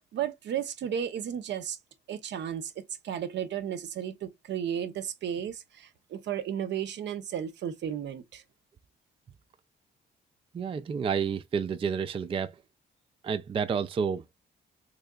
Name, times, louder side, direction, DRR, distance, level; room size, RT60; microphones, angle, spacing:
voice 1, 0.1-1.8 2.1-8.4, right 9 dB, 65° right, 0.7 m, -34 dB
voice 2, 10.5-12.5 13.2-14.2, right 6 dB, 25° right, 0.3 m, -30 dB
3.7 x 3.2 x 2.2 m
cardioid pair, 90°, 20 cm